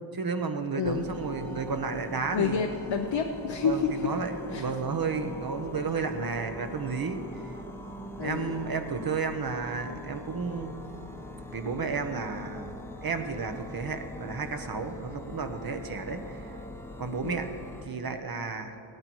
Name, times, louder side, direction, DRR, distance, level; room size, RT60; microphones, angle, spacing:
voice 1, 0.1-2.6 3.6-7.5 8.2-10.7 11.5-16.5 17.0-17.5 17.8-18.8, right 4 dB, 45° right, 7 dB, 1.1 m, -32 dB
voice 2, 0.8-1.1 2.3-4.1 4.5-4.7 8.2-8.6 17.2-17.4, left 6 dB, 65° left, 3 dB, 0.8 m, -29 dB
sound 1, 0.8-17.9, left 1 dB, 5° left, 1.0 m, -43 dB
16.5 x 9.7 x 4.7 m, 2.7 s
cardioid pair, 60°, 49 cm